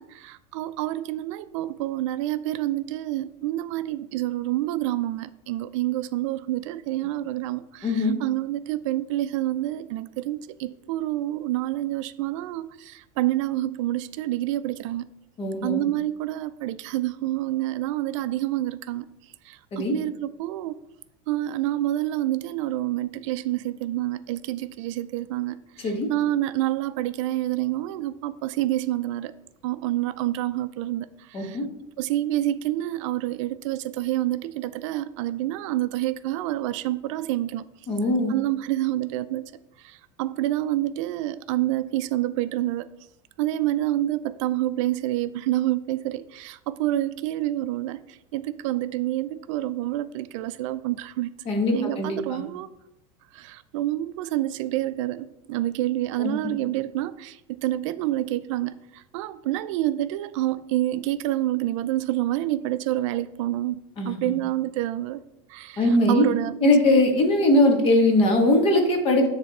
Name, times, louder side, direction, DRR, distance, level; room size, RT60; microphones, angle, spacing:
voice 1, 0.0-15.0 15.6-19.1 19.4-20.8 21.3-29.3 29.6-31.6 32.0-37.6 38.3-39.5 39.8-42.9 43.4-51.3 51.7-52.7 53.3-63.8 64.1-65.2 65.5-66.7, right 14 dB, 70° right, 14 dB, 0.4 m, -28 dB
voice 2, 7.8-8.1 15.4-15.8 19.7-20.0 25.8-26.1 31.3-31.6 37.9-38.3 51.4-52.4 56.2-56.5 64.0-64.3 65.8-66.3 66.6-69.3, left 1 dB, 35° left, 3 dB, 1.5 m, -21 dB
9.8 x 3.4 x 4.2 m, 0.85 s
supercardioid pair, 145°, 17 cm